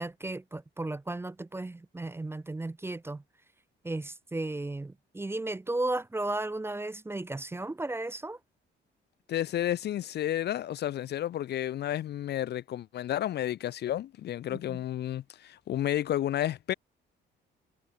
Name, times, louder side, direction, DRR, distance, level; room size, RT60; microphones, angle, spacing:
voice 1, 0.0-3.2 3.8-8.4 14.5-14.8, right 2 dB, 10° right, 0.5 m, -35 dB
voice 2, 9.3-16.7, left 12 dB, 55° left, 0.5 m, -31 dB
cardioid pair, 90°, 20 cm